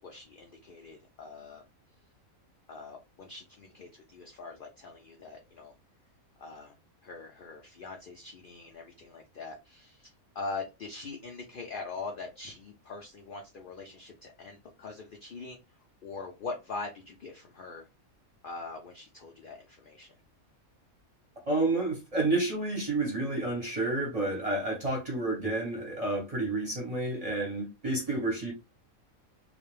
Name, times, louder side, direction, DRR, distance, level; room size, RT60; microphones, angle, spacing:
voice 1, 0.0-1.6 2.7-5.7 6.4-6.7 7.0-15.6 16.0-17.9 18.4-20.1, left 3 dB, 75° left, 0.4 m, -42 dB
voice 2, 21.4-28.5, right 2 dB, 35° right, 0.6 m, -30 dB
2.3 x 2.0 x 3.0 m
omnidirectional pair, 1.5 m